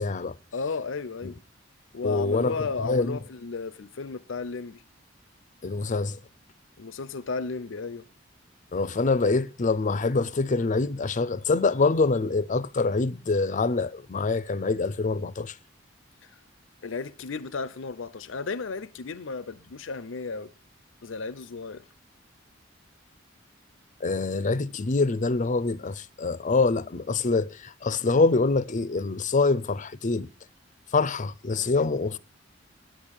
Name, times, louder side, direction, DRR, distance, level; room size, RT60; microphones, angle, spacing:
voice 1, 0.0-0.4 1.2-1.3 2.0-3.2 5.6-6.2 8.7-15.6 24.0-30.3 30.9-32.2, left 3 dB, 40° left, 0.6 m, -25 dB
voice 2, 0.5-1.4 1.9-4.8 6.8-8.1 16.2-16.4 16.8-20.5 21.0-21.8, left 4 dB, 75° left, 0.7 m, -34 dB
10.0 x 9.3 x 9.0 m
head